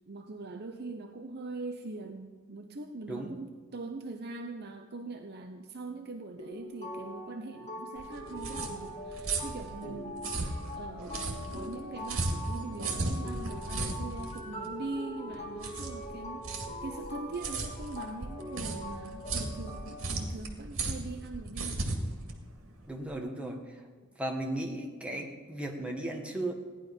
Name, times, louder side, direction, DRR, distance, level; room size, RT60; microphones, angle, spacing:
voice 1, 0.1-22.0, right 3 dB, 45° right, 5 dB, 0.8 m, -42 dB
voice 2, 3.1-3.4 9.9-10.0 22.9-23.8 24.2-26.5, right 1 dB, 5° right, 1 dB, 1.5 m, -36 dB
sound 1, 6.4-20.1, equal, 30° left, 2.0 m, -42 dB
sound 2, 8.0-23.1, right 2 dB, 65° right, 2.2 m, -36 dB
16.0 x 11.0 x 5.3 m, 1.5 s
head